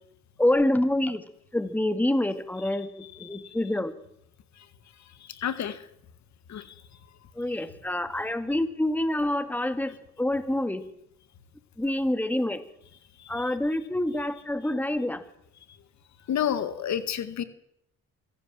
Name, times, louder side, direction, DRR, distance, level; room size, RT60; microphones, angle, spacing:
voice 1, 0.4-1.2 1.5-3.9 7.4-10.8 11.8-12.6 13.3-15.2, left 1 dB, 5° left, 10 dB, 2.0 m, -27 dB
voice 2, 3.2-3.5 5.3-5.8 6.5-6.6 13.2-13.4 16.3-17.4, left 9 dB, 65° left, 12 dB, 2.0 m, -30 dB
24.5 x 15.5 x 7.6 m, 0.75 s
cardioid pair, 90°, 30 cm